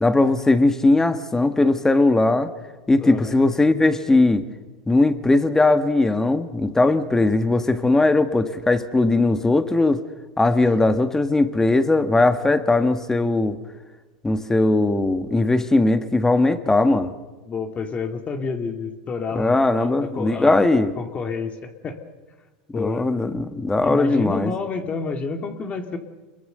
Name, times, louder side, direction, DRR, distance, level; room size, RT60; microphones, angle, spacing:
voice 1, 0.0-2.5 2.9-4.5 4.9-10.0 10.4-13.6 14.2-17.1 19.3-20.9 22.7-24.5, left 2 dB, 10° left, 10 dB, 1.7 m, -19 dB
voice 2, 3.0-3.4 10.6-10.8 17.5-20.5 21.0-22.0 22.7-23.1 23.8-26.0, left 4 dB, 30° left, 6 dB, 2.3 m, -29 dB
26.5 x 22.0 x 6.8 m, 1.2 s
hypercardioid pair, 100°, 4 cm